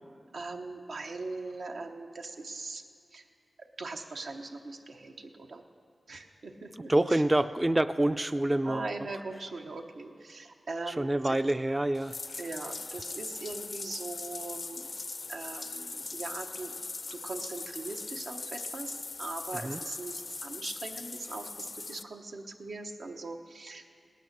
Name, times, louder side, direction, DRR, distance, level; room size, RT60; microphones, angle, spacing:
voice 1, 0.3-2.8 3.1-3.3 3.6-5.6 6.1-7.2 8.6-11.4 12.4-14.9 15.3-16.7 17.1-23.9, right 3 dB, 85° right, 3 dB, 0.9 m, -40 dB
voice 2, 6.9-8.9 10.9-12.4 19.6-19.8, right 1 dB, 20° right, 11 dB, 0.3 m, -27 dB
Bathtub (filling or washing), 11.9-22.0, left 3 dB, 50° left, 0.4 m, -40 dB
18.0 x 9.2 x 6.5 m, 2.3 s
wide cardioid pair, 65°, 0 cm